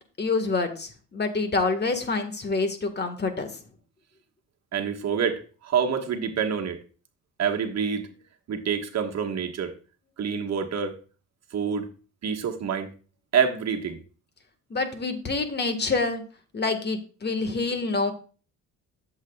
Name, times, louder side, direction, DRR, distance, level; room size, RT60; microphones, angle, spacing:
voice 1, 0.2-3.5 14.7-16.2 16.5-18.1, left 3 dB, 30° left, 1.5 m, -27 dB
voice 2, 4.7-6.8 7.4-8.1 8.5-9.7 10.2-10.9 11.5-11.9 12.2-12.9 13.3-14.0, right 7 dB, 55° right, 1.4 m, -27 dB
12.0 x 7.5 x 2.3 m
cardioid pair, 100°, 32 cm